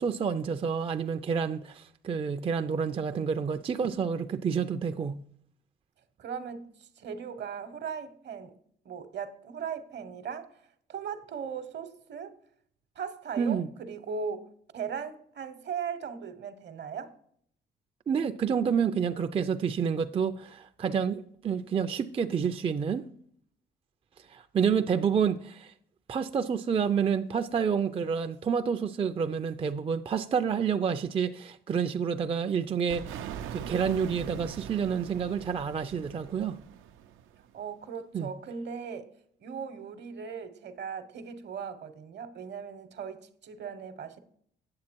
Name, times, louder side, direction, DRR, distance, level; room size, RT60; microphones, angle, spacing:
voice 1, 0.0-5.2 13.4-13.7 18.1-23.0 24.3-25.7 26.1-36.6 38.1-38.3, right 7 dB, 30° right, 0.4 m, -29 dB
voice 2, 6.2-8.5 8.8-10.6 10.9-12.4 13.0-17.1 37.5-39.1 39.4-44.2, right 6 dB, 60° right, 0.9 m, -38 dB
sound 1, 32.9-37.6, right 9 dB, 85° right, 0.5 m, -42 dB
8.6 x 7.1 x 4.5 m
cardioid pair, 90°, 20 cm